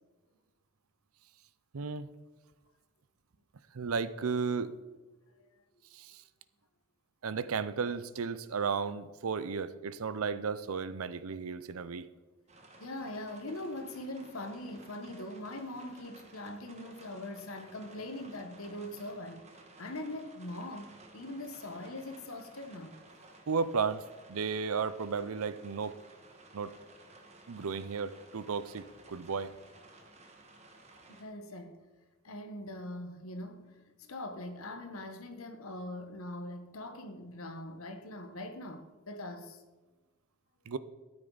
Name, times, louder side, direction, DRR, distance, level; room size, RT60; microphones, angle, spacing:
voice 1, 1.7-2.1 3.7-4.7 5.9-6.2 7.2-12.1 23.5-24.0 24.3-26.0 26.5-26.7 27.5-29.5 40.7-40.8, right 5 dB, 85° right, 0.6 m, -34 dB
sound 1, 12.5-31.2, right 2 dB, 30° right, 1.5 m, -56 dB
voice 2, 12.8-19.4 19.8-23.0 31.1-31.7 32.2-39.6, left 1 dB, 80° left, 1.2 m, -42 dB
13.0 x 8.9 x 4.0 m
head